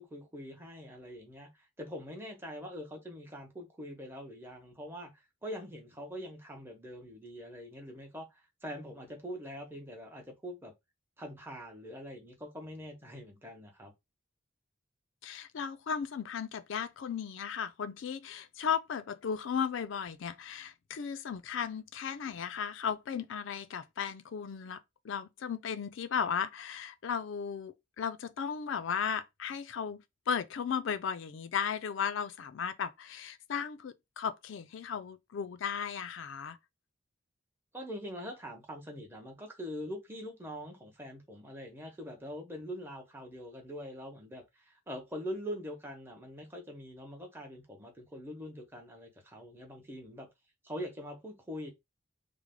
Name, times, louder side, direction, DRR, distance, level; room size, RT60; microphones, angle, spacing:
voice 1, 0.0-1.5 1.8-5.1 5.4-10.7 11.2-13.9 37.7-50.3 50.6-51.7, equal, 10° right, 0.9 m, -43 dB
voice 2, 15.2-36.6, left 7 dB, 65° left, 0.4 m, -35 dB
3.2 x 2.0 x 3.6 m
head